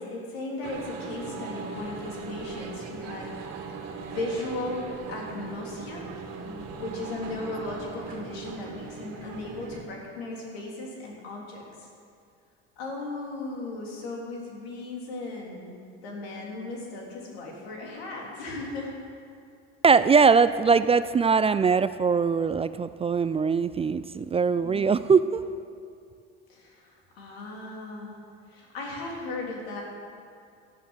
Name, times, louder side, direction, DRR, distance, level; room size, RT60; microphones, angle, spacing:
voice 1, 0.0-3.6 4.0-6.1 6.4-11.9 12.8-15.8 16.0-18.9 24.6-25.0 26.5-28.2 28.5-29.8, left 2 dB, 85° left, -2 dB, 3.3 m, -36 dB
sound 1, 0.6-9.8, right 5 dB, 60° right, 2.0 m, -39 dB
voice 2, 19.8-25.4, right 5 dB, 20° right, 14 dB, 0.4 m, -21 dB
13.0 x 11.0 x 6.4 m, 2.3 s
supercardioid pair, 80°, 30 cm